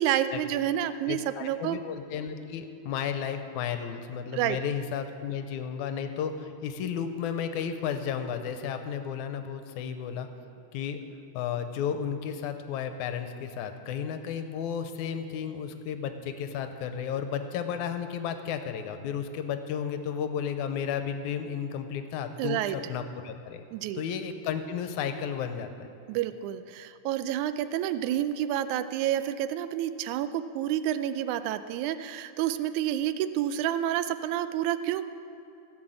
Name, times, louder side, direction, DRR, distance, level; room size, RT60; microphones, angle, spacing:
voice 1, 0.0-1.8 4.3-4.6 22.4-22.8 23.7-24.0 26.1-35.1, right 11 dB, 80° right, 12 dB, 1.9 m, -29 dB
voice 2, 1.1-10.3 10.7-11.0 11.3-23.6 23.9-25.7, left 8 dB, 80° left, 8 dB, 2.0 m, -33 dB
16.0 x 6.1 x 7.8 m, 2.8 s
omnidirectional pair, 3.6 m